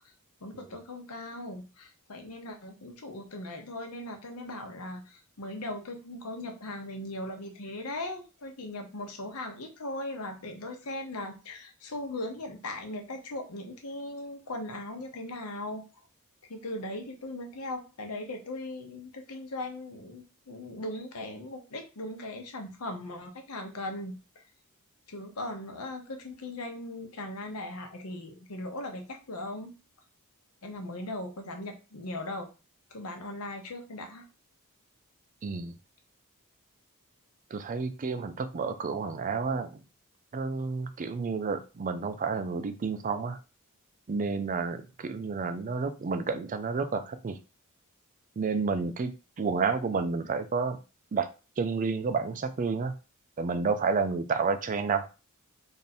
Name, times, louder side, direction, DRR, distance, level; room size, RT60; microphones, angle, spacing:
voice 1, 0.4-15.9 16.5-24.4 25.1-29.7 30.6-32.5 32.9-34.2, left 1 dB, 75° left, 4 dB, 0.8 m, -39 dB
voice 2, 35.4-35.7 37.5-39.8 40.3-43.4 44.1-47.4 48.4-50.8 51.1-51.3 51.6-53.0 53.4-55.1, right 4 dB, 35° right, 9 dB, 0.4 m, -30 dB
3.4 x 2.6 x 4.2 m, 0.32 s
head